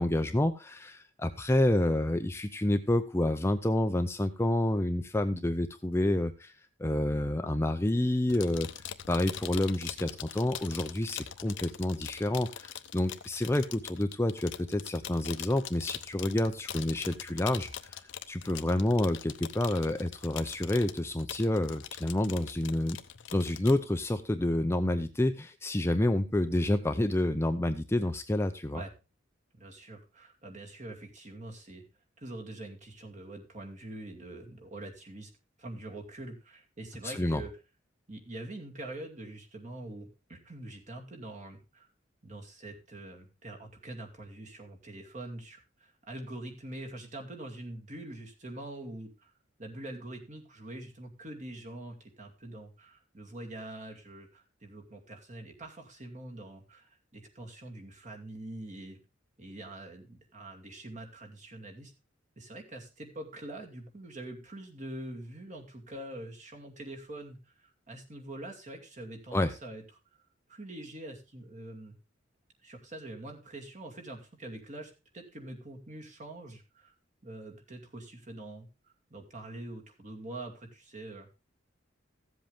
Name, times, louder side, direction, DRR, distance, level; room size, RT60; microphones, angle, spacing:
voice 1, 0.0-6.5 6.8-8.7 9.1-18.0 18.3-23.0 23.3-28.8 37.0-37.4 69.3-69.5, left 1 dB, 15° left, 8 dB, 0.6 m, -29 dB
sound 1, 8.3-23.8, left 10 dB, 65° left, 0.8 m, -43 dB
voice 2, 29.6-31.8 32.2-35.3 35.6-37.5 38.1-41.9 42.2-49.3 49.6-59.0 59.4-61.9 62.4-69.8 70.5-71.9 72.6-76.9 77.2-78.7 79.1-81.5, right 1 dB, 40° right, 2 dB, 2.4 m, -44 dB
15.0 x 7.8 x 3.4 m, 0.29 s
head